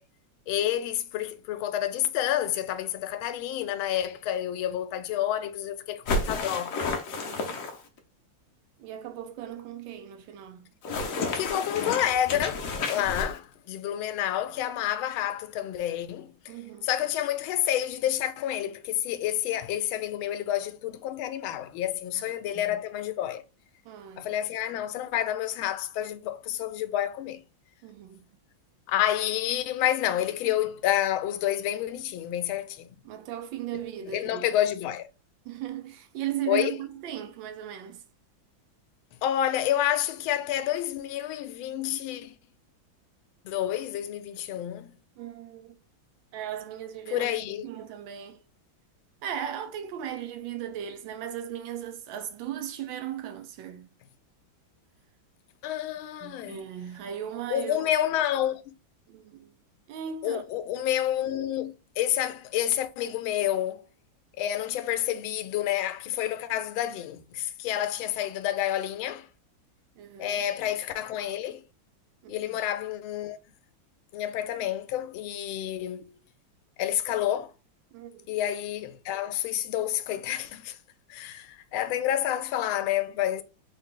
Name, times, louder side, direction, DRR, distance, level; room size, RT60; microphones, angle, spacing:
voice 1, 0.5-6.8 11.3-16.5 16.8-23.4 24.2-27.4 28.9-32.9 34.0-35.1 36.5-36.7 39.2-42.4 43.4-44.9 47.1-47.6 55.6-56.6 57.5-58.6 60.2-63.8 64.4-69.3 70.2-71.6 72.3-73.4 74.1-76.1 76.8-77.5 78.3-80.8 81.1-83.4, left 11 dB, 85° left, 1.4 m, -29 dB
sound 1, 6.1-8.0 10.8-13.4, left 3 dB, 65° left, 0.8 m, -31 dB
voice 2, 7.1-7.6 8.8-10.7 12.9-13.1 16.5-16.9 22.2-22.9 23.8-24.3 27.8-28.3 33.0-34.5 35.4-38.0 45.2-45.8 46.3-47.3 47.6-48.4 49.2-54.0 56.2-57.9 59.1-59.5 59.9-60.4 70.0-70.4 72.2-72.6 77.9-78.3, right 10 dB, 80° right, 1.4 m, -37 dB
3.9 x 2.5 x 3.7 m
omnidirectional pair, 2.2 m